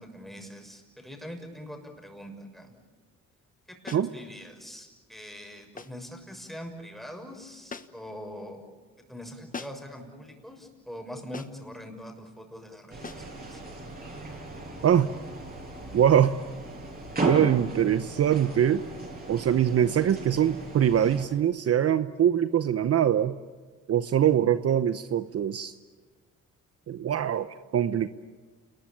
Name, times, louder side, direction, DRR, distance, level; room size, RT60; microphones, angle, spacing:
voice 1, 0.0-2.7 3.7-8.6 9.1-13.6, equal, ahead, 3 dB, 6.5 m, -43 dB
sound 1, 3.9-4.2 5.8-6.1 7.7-8.1 9.5-10.0 11.3-11.7 13.0-13.3, left 4 dB, 25° left, 1.3 m, -42 dB
sound 2, 12.9-21.2, right 2 dB, 30° right, 7.6 m, -36 dB
voice 2, 15.9-16.3 17.2-18.8 19.3-23.4 23.9-25.7 26.9-28.1, right 9 dB, 50° right, 12 dB, 0.9 m, -23 dB
29.5 x 21.0 x 8.8 m, 1.4 s
cardioid pair, 90°, 30 cm